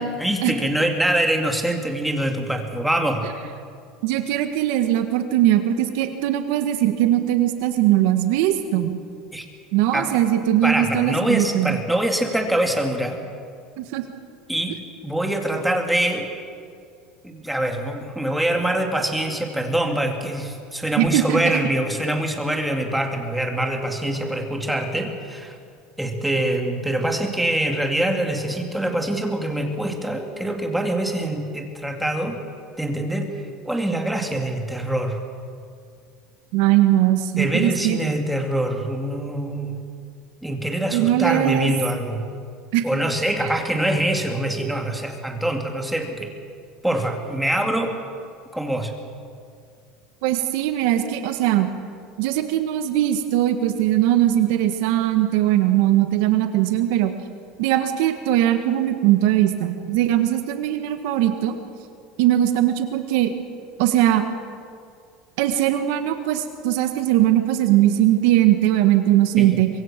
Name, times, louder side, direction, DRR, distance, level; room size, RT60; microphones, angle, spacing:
voice 1, 0.2-3.3 9.3-9.4 9.9-10.1 10.6-13.2 14.5-14.8 15.0-16.3 17.2-25.6 26.0-32.4 32.8-35.2 37.4-39.8 40.4-42.2 42.8-46.3 46.8-48.0 48.5-48.9 69.4-69.6, right 1 dB, 5° right, 3 dB, 2.3 m, -24 dB
voice 2, 4.0-9.0 9.7-11.8 13.8-14.0 21.0-21.4 36.5-38.0 40.9-41.7 42.7-42.9 50.2-51.7 52.2-57.1 57.6-61.5 62.2-63.3 63.8-64.2 65.4-69.7, right 13 dB, 70° right, 7 dB, 1.5 m, -20 dB
24.5 x 21.5 x 7.5 m, 2.3 s
cardioid pair, 145°, 0 cm